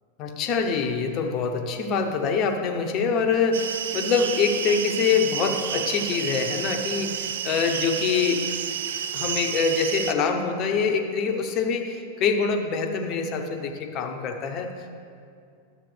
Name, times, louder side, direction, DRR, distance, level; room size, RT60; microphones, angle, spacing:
voice 1, 0.2-8.5 9.1-15.0, left 5 dB, 40° left, 5 dB, 0.9 m, -25 dB
sound 1, 3.5-10.1, right 8 dB, 65° right, 0.4 m, -30 dB
12.0 x 7.5 x 3.4 m, 2.3 s
figure-of-eight pair, 90°, 0 cm